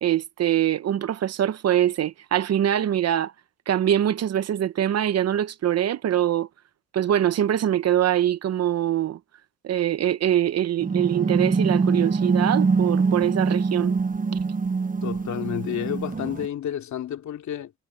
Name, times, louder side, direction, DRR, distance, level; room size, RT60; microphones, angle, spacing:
voice 1, 0.0-3.3 3.7-6.5 6.9-9.2 9.6-14.0, right 11 dB, 55° right, 0.9 m, -23 dB
sound 1, 10.8-16.5, right 4 dB, 25° right, 1.1 m, -24 dB
voice 2, 15.0-17.7, left 10 dB, 70° left, 3.0 m, -30 dB
cardioid pair, 90°, 30 cm